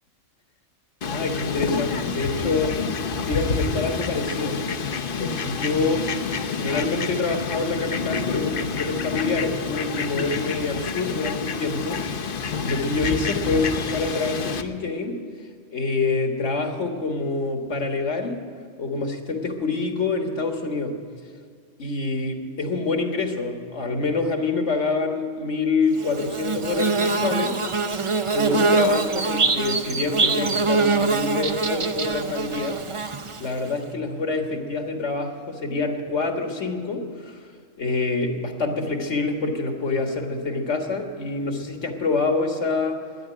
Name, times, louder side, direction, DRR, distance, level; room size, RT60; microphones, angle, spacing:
voice 1, 1.0-2.9 3.3-4.6 5.2-6.1 6.5-15.2 15.7-18.4 18.8-21.0 21.8-27.6 27.9-28.0 28.3-32.8 33.4-37.4 37.8-43.0, left 3 dB, 65° left, 4 dB, 1.9 m, -26 dB
Fowl, 1.0-14.6, left 5 dB, 50° left, 0.9 m, -28 dB
Bird / Buzz, 26.0-33.7, right 4 dB, 35° right, 0.5 m, -23 dB
13.0 x 9.6 x 9.9 m, 2.1 s
omnidirectional pair, 1.3 m